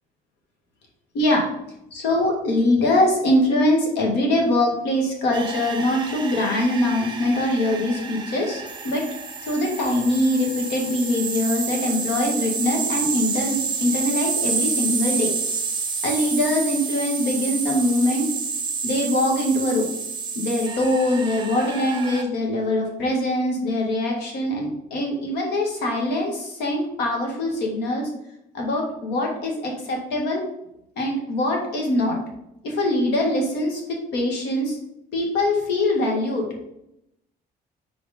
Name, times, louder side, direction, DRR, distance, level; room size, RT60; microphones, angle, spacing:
voice 1, 1.1-1.5 1.9-9.1 9.4-15.3 16.0-18.3 18.8-19.9 20.4-28.1 28.5-30.4 31.0-32.2 32.6-34.8 35.1-36.5, left 1 dB, 85° left, 0 dB, 1.9 m, -23 dB
sound 1, 5.3-22.2, right 5 dB, 25° right, 0.9 m, -29 dB
4.7 x 4.3 x 5.0 m, 0.81 s
cardioid pair, 110°, 17 cm